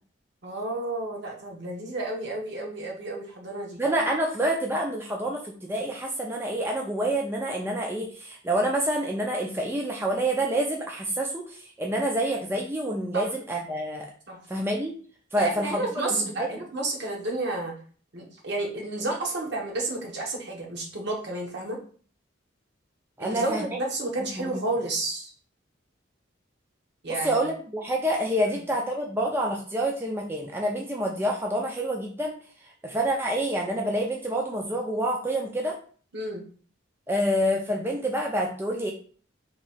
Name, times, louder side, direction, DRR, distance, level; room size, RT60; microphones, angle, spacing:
voice 1, 0.4-3.8 13.1-13.3 14.3-14.4 15.4-17.7 18.1-21.8 23.2-25.3 27.0-27.4 36.1-36.4, right 2 dB, 60° right, 0 dB, 1.0 m, -31 dB
voice 2, 3.8-14.1 14.5-14.9 15.3-16.6 23.2-23.7 24.3-24.6 27.1-32.3 32.8-35.7 37.1-38.9, right 1 dB, 10° right, 0 dB, 0.4 m, -27 dB
3.0 x 2.7 x 4.1 m, 0.43 s
head